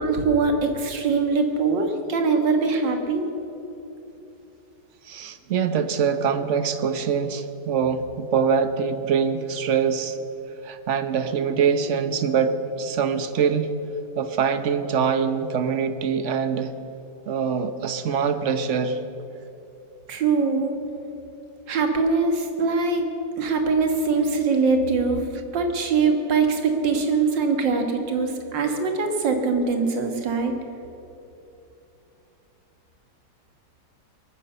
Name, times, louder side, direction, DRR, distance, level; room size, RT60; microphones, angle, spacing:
voice 1, 0.0-3.3 20.1-20.7 21.7-23.1 23.4-25.3 25.5-30.5, right 4 dB, 85° right, 4 dB, 2.2 m, -22 dB
voice 2, 5.1-10.2 10.6-13.7 14.2-16.7 17.3-19.0, right 6 dB, 50° right, 10 dB, 1.0 m, -24 dB
21.5 x 9.7 x 6.8 m, 2.9 s
omnidirectional pair, 1.9 m